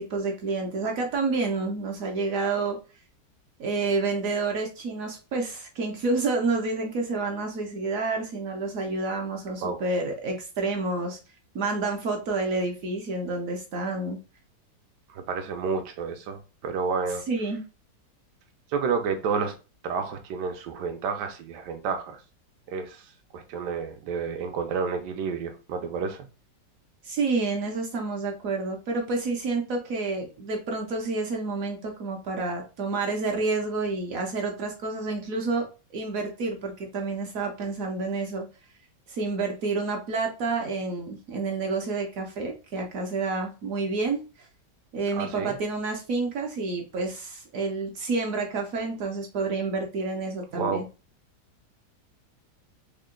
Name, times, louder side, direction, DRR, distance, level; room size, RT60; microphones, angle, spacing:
voice 1, 0.0-2.8 3.6-11.2 11.5-14.2 17.3-17.6 27.0-35.6 35.9-38.5 39.1-44.5 44.9-50.8, right 3 dB, 65° right, 0.9 m, -29 dB
voice 2, 15.1-17.2 18.7-19.5 19.8-22.2 22.7-23.0 23.3-26.3 45.1-45.6 50.5-50.8, right 5 dB, 80° right, 1.2 m, -30 dB
3.6 x 2.1 x 3.6 m
omnidirectional pair, 1.9 m